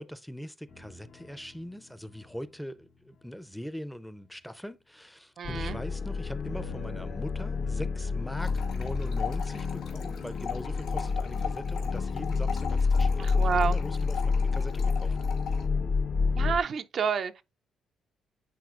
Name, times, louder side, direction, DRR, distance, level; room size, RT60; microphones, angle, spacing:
voice 1, 0.0-15.2, equal, 5° left, 0.5 m, -41 dB
sound 1, 0.7-4.7 6.5-11.2 11.5-11.7, equal, 70° left, 2.4 m, -53 dB
sound 2, 5.4-16.6, left 4 dB, 55° left, 0.8 m, -29 dB
voice 2, 5.4-5.8 13.2-13.8 16.4-17.4, right 6 dB, 55° right, 0.5 m, -29 dB
sound 3, 8.4-15.6, left 8 dB, 90° left, 2.6 m, -40 dB
9.4 x 4.2 x 2.4 m
cardioid pair, 90°, 0 cm